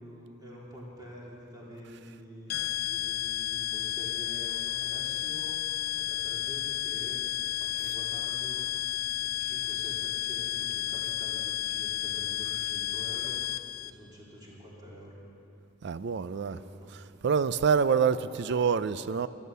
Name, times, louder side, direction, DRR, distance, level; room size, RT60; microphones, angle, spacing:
voice 1, 0.0-5.6 5.9-7.2 7.5-8.6 9.1-13.5 13.8-15.2 16.3-17.0 17.8-19.1, equal, 20° right, 3.5 m, -47 dB
sound 1, 2.5-13.9, left 13 dB, 50° left, 0.6 m, -32 dB
voice 2, 15.8-16.6 17.2-19.3, right 6 dB, 60° right, 0.4 m, -26 dB
13.5 x 11.5 x 8.0 m
head